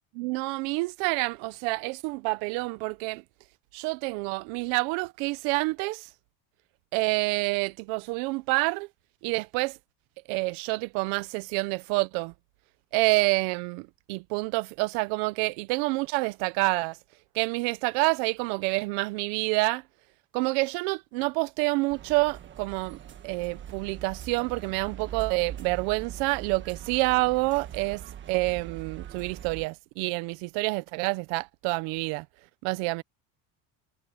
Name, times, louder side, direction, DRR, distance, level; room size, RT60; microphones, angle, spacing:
voice 1, 0.2-3.2 3.7-6.1 6.9-8.9 9.2-9.8 10.3-12.3 12.9-17.0 17.3-19.8 20.3-23.0 23.2-28.0 28.3-32.3 32.6-33.0, right 25 dB, 65° right, 0.9 m, -28 dB
sound 1, 21.9-29.6, right 10 dB, 30° right, 1.6 m, -42 dB
cardioid pair, 155°, 39 cm